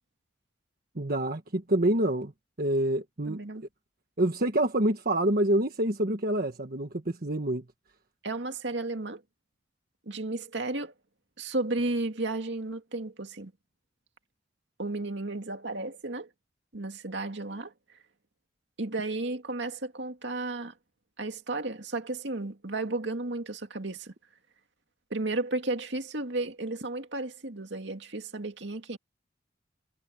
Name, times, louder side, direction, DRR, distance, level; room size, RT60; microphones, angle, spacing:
voice 1, 0.9-2.3 2.6-3.4 4.2-7.6, right 1 dB, 50° right, 1.4 m, -27 dB
voice 2, 3.3-3.6 8.2-9.2 10.1-10.9 11.4-13.5 14.8-16.3 16.7-17.7 18.8-20.7 21.2-24.1 25.1-29.0, right 2 dB, 70° right, 2.3 m, -33 dB
head